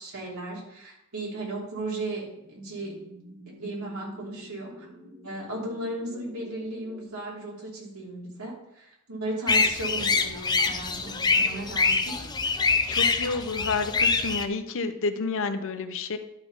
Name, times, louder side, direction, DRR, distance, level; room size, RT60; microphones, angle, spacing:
voice 1, 0.0-2.9 3.4-4.9 5.2-12.2, right 2 dB, 80° right, -4 dB, 3.0 m, -36 dB
sound 1, 1.6-7.1, equal, 30° right, 1.5 m, -49 dB
sound 2, 9.5-14.4, left 4 dB, 20° left, 0.6 m, -25 dB
voice 2, 12.9-16.2, left 4 dB, 65° left, 9 dB, 0.7 m, -30 dB
11.5 x 4.1 x 5.4 m, 0.83 s
head